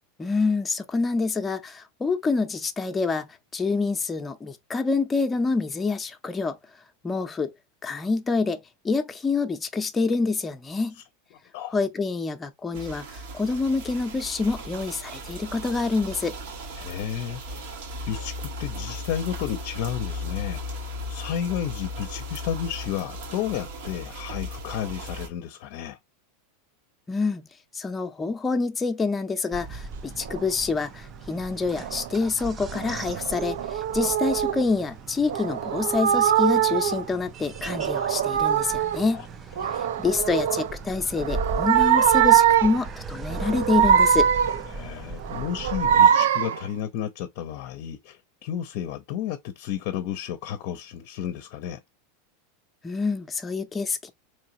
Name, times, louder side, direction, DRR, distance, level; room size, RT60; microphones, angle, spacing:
voice 1, 0.2-3.3 3.5-6.6 7.0-7.5 7.8-10.9 11.7-16.4 27.1-27.4 27.7-39.2 40.0-44.3 52.8-54.1, left 4 dB, 15° left, 0.6 m, -27 dB
sound 1, 12.7-25.3, left 1 dB, 70° right, 1.1 m, -37 dB
voice 2, 16.8-17.7 18.1-26.0 34.0-34.1 39.1-39.3 39.6-40.0 44.7-51.8, left 9 dB, 60° left, 0.6 m, -32 dB
sound 2, 29.5-46.1, right 3 dB, 25° right, 0.4 m, -38 dB
sound 3, 30.2-30.5 31.8-32.2 32.7-34.6 35.3-37.1 37.6-39.1 39.5-40.7 41.2-42.9 43.3-44.7 45.2-46.7, right 9 dB, 85° right, 0.4 m, -22 dB
3.8 x 3.1 x 2.8 m
supercardioid pair, 125°, 0 cm